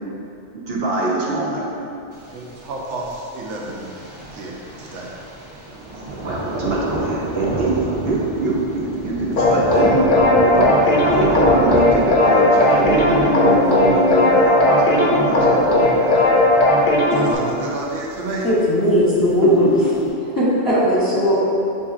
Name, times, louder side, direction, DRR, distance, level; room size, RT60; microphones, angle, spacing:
voice 1, 0.5-1.7 6.0-16.3 19.4-19.9, right 2 dB, 60° right, -4 dB, 0.9 m, -23 dB
Thunder, 2.1-20.1, right 1 dB, 40° right, 0.4 m, -32 dB
voice 2, 2.3-3.9 4.3-5.2 17.1-18.5, right 2 dB, 80° right, -2 dB, 1.0 m, -30 dB
sound 1, 9.4-17.4, left 1 dB, 55° left, 0.6 m, -16 dB
voice 3, 18.4-19.7 20.4-21.4, equal, 20° left, -9 dB, 0.9 m, -17 dB
7.0 x 2.6 x 2.4 m, 2.8 s
omnidirectional pair, 1.2 m